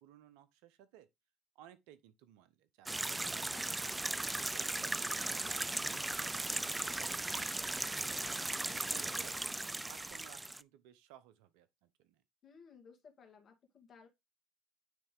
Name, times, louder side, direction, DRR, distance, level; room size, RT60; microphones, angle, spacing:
voice 1, 0.0-1.1 1.5-4.1 4.5-9.4 9.9-12.2, right 11 dB, 80° right, 0.8 m, -59 dB
sound 1, 2.9-10.6, right 2 dB, 15° right, 0.3 m, -37 dB
voice 2, 12.4-14.1, left 5 dB, 50° left, 2.1 m, -59 dB
9.3 x 3.3 x 3.6 m
hypercardioid pair, 65°, 0 cm